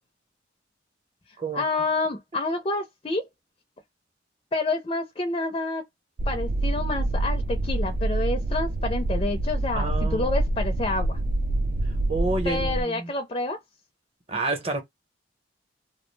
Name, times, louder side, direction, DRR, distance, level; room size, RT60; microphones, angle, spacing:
voice 1, 1.5-3.2 4.5-5.8 6.3-11.2 12.4-13.6, left 2 dB, 30° left, 0.4 m, -28 dB
sound 1, 6.2-12.8, right 1 dB, 50° right, 0.4 m, -26 dB
voice 2, 9.7-10.3 12.1-13.1 14.3-14.8, right 3 dB, 30° right, 0.8 m, -29 dB
2.4 x 2.0 x 3.1 m
head